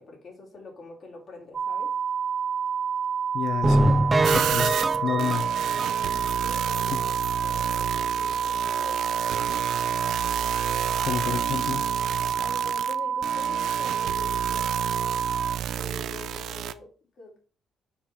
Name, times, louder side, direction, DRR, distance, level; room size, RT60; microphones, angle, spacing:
voice 1, 0.0-2.0 6.1-9.2 12.4-14.9 15.7-17.4, left 4 dB, 60° left, 3.2 m, -45 dB
sound 1, 1.5-15.6, right 7 dB, 45° right, 1.1 m, -28 dB
voice 2, 3.3-4.0 4.3-5.5 6.9-7.0 11.0-11.9, left 7 dB, 80° left, 0.6 m, -30 dB
sound 2, 3.6-6.4 6.8-6.9 7.2-7.3 7.7-7.8, right 1 dB, 20° right, 0.6 m, -24 dB
sound 3, 4.2-16.7, right 11 dB, 80° right, 0.4 m, -32 dB
6.9 x 5.5 x 3.7 m
cardioid pair, 90°, 0 cm